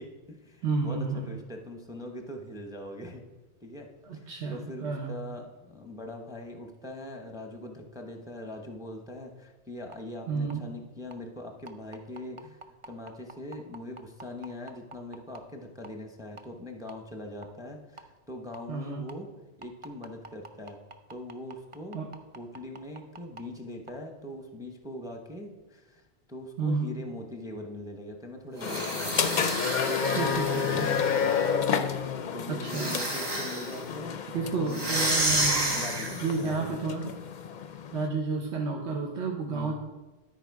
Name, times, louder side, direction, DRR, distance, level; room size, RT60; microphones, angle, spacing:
voice 1, 0.0-3.2 3.6-3.9 4.1-19.3 19.6-20.8 21.1-22.0 22.3-26.0 26.3-29.3 29.6-31.3 32.3-36.8 39.4-39.7, left 1 dB, 5° right, 3 dB, 0.7 m, -42 dB
voice 2, 0.6-1.3 4.0-5.2 10.3-10.7 18.7-19.0 21.9-22.1 26.6-26.9 30.1-30.9 32.5-33.0 34.3-35.8 36.2-37.1 37.9-39.7, right 4 dB, 75° right, 0 dB, 1.2 m, -31 dB
sound 1, 9.9-10.0 10.5-10.6 11.1-11.2 11.7-15.4 15.8-16.0 16.4-16.5 16.9-17.0 17.4-17.5 18.0-18.1 18.5-18.6 19.1-19.2 19.6-23.4 23.9-24.0, right 3 dB, 40° right, 0.5 m, -45 dB
sound 2, 28.6-38.1, left 7 dB, 55° left, 0.5 m, -30 dB
sound 3, 28.6-31.6 32.6-33.8 34.7-36.4, right 1 dB, 20° right, 1.2 m, -30 dB
12.5 x 4.4 x 4.6 m, 1.1 s
omnidirectional pair, 1.2 m